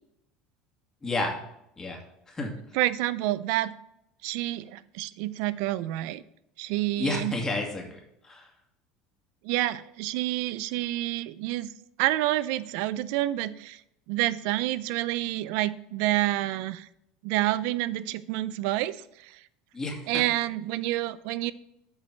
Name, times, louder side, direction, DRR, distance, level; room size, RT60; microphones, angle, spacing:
voice 1, 1.0-1.4 1.8-2.0 2.3-2.5 7.0-8.0 8.2-8.5 19.7-20.2, left 2 dB, 20° left, 0 dB, 2.3 m, -30 dB
voice 2, 2.7-3.7 4.2-6.2 6.6-7.4 9.4-11.7 12.0-13.8 14.1-16.9 17.2-19.4 20.1-21.5, right 16 dB, 70° right, 17 dB, 0.5 m, -28 dB
7.4 x 5.2 x 5.9 m, 0.79 s
supercardioid pair, 105°, 3 cm